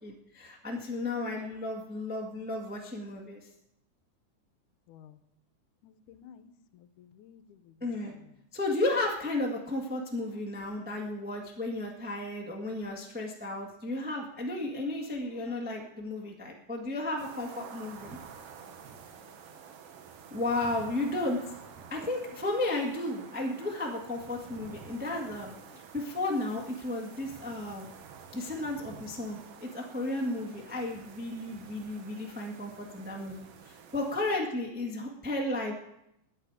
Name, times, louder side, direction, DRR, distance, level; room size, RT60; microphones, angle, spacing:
voice 1, 0.0-3.5 7.8-8.1 8.5-18.2 20.3-21.4 21.9-25.5 25.9-27.8 28.3-35.7, left 2 dB, 10° right, 0 dB, 0.6 m, -33 dB
voice 2, 4.9-5.2 5.8-7.8 15.3-16.0 18.0-19.0 19.2-19.3 25.7-25.8, left 9 dB, 80° left, 11 dB, 2.2 m, -56 dB
sound 1, 17.2-34.4, right 7 dB, 60° right, 1.7 m, -49 dB
21.0 x 8.2 x 4.9 m, 0.81 s
omnidirectional pair, 3.6 m